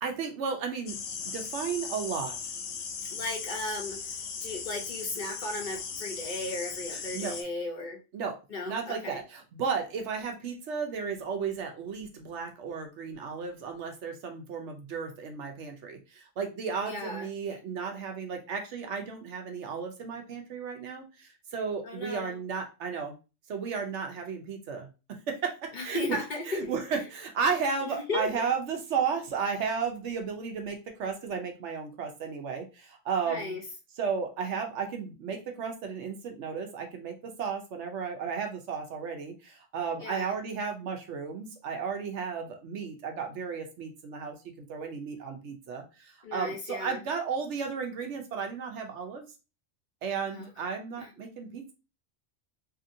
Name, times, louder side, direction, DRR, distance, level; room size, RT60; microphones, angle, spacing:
voice 1, 0.0-1.0 1.3-2.5 6.9-7.4 8.1-8.4 8.7-23.1 23.5-24.9 25.3-26.2 26.4-33.5 34.0-49.3 50.0-51.6, right 6 dB, 70° right, 4 dB, 0.9 m, -34 dB
sound 1, 0.9-7.4, left 6 dB, 80° left, 0.9 m, -38 dB
voice 2, 3.1-8.0 8.5-9.2 16.8-17.3 21.8-22.4 25.7-26.7 28.1-28.3 33.2-33.6 40.0-40.3 46.2-47.0 50.3-50.5 51.0-51.1, left 2 dB, 45° left, 0 dB, 0.8 m, -35 dB
2.8 x 2.7 x 2.6 m, 0.30 s
omnidirectional pair, 1.3 m